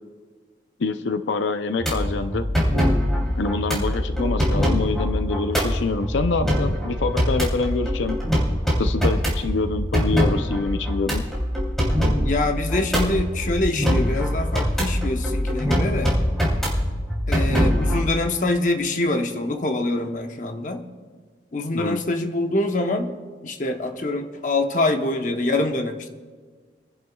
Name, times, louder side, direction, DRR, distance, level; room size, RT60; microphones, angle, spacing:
voice 1, 0.8-2.4 3.4-8.2 8.8-11.2 21.7-22.0, left 3 dB, 90° left, 9 dB, 0.5 m, -26 dB
sound 1, 1.8-18.1, equal, ahead, 3.1 m, -23 dB
voice 2, 12.1-16.2 17.3-20.8 21.5-23.1 23.4-26.1, left 2 dB, 45° left, 5 dB, 0.9 m, -25 dB
29.5 x 10.5 x 2.3 m, 1.5 s
head